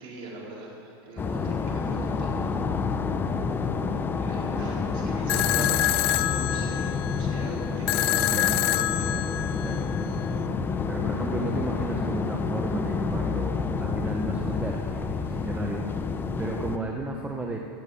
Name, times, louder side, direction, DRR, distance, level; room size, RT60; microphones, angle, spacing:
voice 1, 0.0-2.4 4.2-9.1 15.3-15.4, right 2 dB, 35° right, -3 dB, 4.4 m, -42 dB
sound 1, 1.2-16.8, left 5 dB, 15° left, 0.7 m, -29 dB
sound 2, 5.3-10.3, left 15 dB, 70° left, 0.6 m, -27 dB
voice 2, 5.3-5.8 8.2-8.7 9.0-9.3 9.6-9.8 10.9-17.6, right 2 dB, 10° right, 1 dB, 0.9 m, -34 dB
16.5 x 7.3 x 9.8 m, 2.5 s
supercardioid pair, 135°, 14 cm